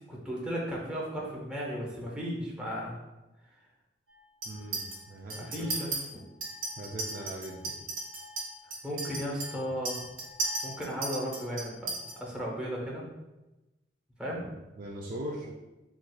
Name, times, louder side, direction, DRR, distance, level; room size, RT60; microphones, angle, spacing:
voice 1, 0.1-3.0 5.4-6.2 8.8-10.1 10.6-13.0 14.2-14.5 15.4-15.5, equal, 5° right, -4 dB, 0.7 m, -35 dB
Chink clink, 4.4-5.0 5.3-6.0 6.4-12.1, right 2 dB, 80° right, 1.1 m, -36 dB
voice 2, 4.5-5.7 6.8-7.7 9.5-9.6 14.8-15.5, right 1 dB, 50° right, -3 dB, 0.4 m, -40 dB
4.2 x 2.4 x 2.2 m, 1.0 s
head